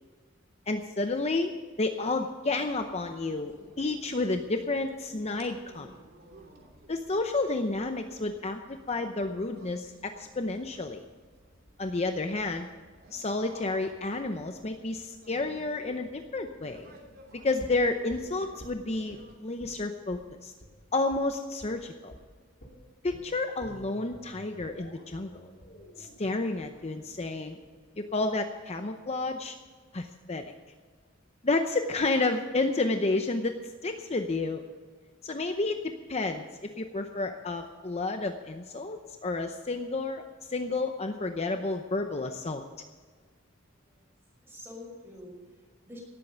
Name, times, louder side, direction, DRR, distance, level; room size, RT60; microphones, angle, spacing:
voice 1, 0.7-1.5 1.8-5.9 6.9-11.0 11.8-12.7 13.1-16.9 17.4-20.5 20.9-22.1 23.0-25.5 26.0-27.6 28.0-29.6 29.9-30.5 31.4-33.5 33.8-34.6 35.2-40.2 40.5-42.6, left 3 dB, 30° left, 6 dB, 0.7 m, -31 dB
sound 1, 2.7-19.3, right 1 dB, 50° right, 2.8 m, -56 dB
sound 2, 17.6-19.2 19.6-19.8 20.1-20.2 20.6-20.7 21.1-21.2 21.6-21.8 22.1-22.2 22.6-28.6 28.9-29.0, equal, 50° left, 3.4 m, -51 dB
voice 2, 43.8-44.2 44.4-46.0, left 1 dB, 10° right, -2 dB, 5.7 m, -47 dB
18.0 x 8.4 x 6.9 m, 1.5 s
head